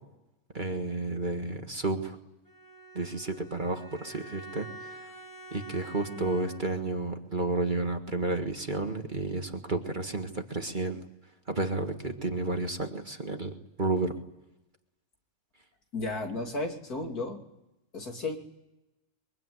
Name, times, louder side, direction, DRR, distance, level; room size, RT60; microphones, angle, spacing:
voice 1, 0.5-2.2 3.0-4.7 5.5-11.0 11.5-13.5 13.8-14.1, right 2 dB, 30° right, 5 dB, 1.9 m, -31 dB
Bowed string instrument, 2.4-6.9, right 1 dB, 15° left, 7.5 m, -47 dB
voice 2, 6.1-6.5 15.9-17.4 17.9-18.4, left 2 dB, 80° left, 2 dB, 3.5 m, -34 dB
23.5 x 23.5 x 9.7 m, 0.94 s
omnidirectional pair, 1.6 m